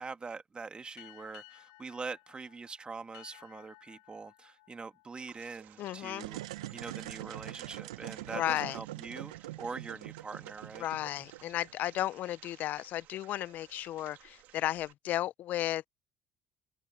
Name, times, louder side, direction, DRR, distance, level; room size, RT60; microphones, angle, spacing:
voice 1, 0.0-6.4 6.7-10.9, right 4 dB, 30° right, 2.5 m, -43 dB
sound 1, 1.0-6.1, left 23 dB, 85° left, 3.1 m, -57 dB
sound 2, 5.2-14.9, right 14 dB, 70° right, 2.5 m, -57 dB
voice 2, 5.8-6.3 8.3-8.8 10.8-15.9, left 13 dB, 65° left, 0.5 m, -34 dB
sound 3, 6.1-12.0, right 16 dB, 85° right, 0.9 m, -44 dB
open air
hypercardioid pair, 55°, 3 cm